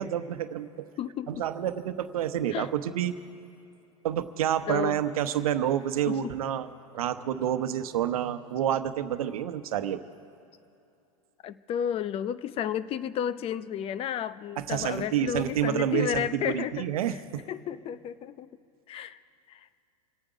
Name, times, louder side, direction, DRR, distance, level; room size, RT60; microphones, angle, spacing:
voice 1, 0.0-0.9 1.3-3.1 4.0-6.7 6.9-10.0 14.6-17.4, right 10 dB, 75° right, 10 dB, 1.0 m, -29 dB
voice 2, 1.0-1.3 2.5-2.7 4.7-5.0 6.1-6.3 11.4-17.2 17.5-18.5 18.9-19.2 19.5-19.8, left 9 dB, 30° left, 15 dB, 0.6 m, -32 dB
26.5 x 8.9 x 5.0 m, 2.7 s
hypercardioid pair, 115°, 19 cm